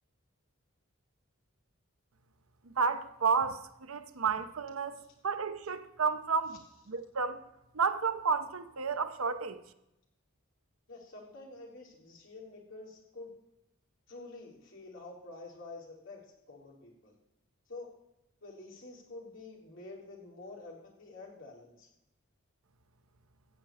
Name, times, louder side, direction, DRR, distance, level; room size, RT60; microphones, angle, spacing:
voice 1, 2.8-6.6 6.9-7.4 7.7-9.6, right 5 dB, 85° right, 0.8 m, -31 dB
voice 2, 10.9-13.3 14.1-17.2 17.7-17.9 18.4-21.9, left 2 dB, 65° left, 3.5 m, -48 dB
15.0 x 4.9 x 8.9 m
head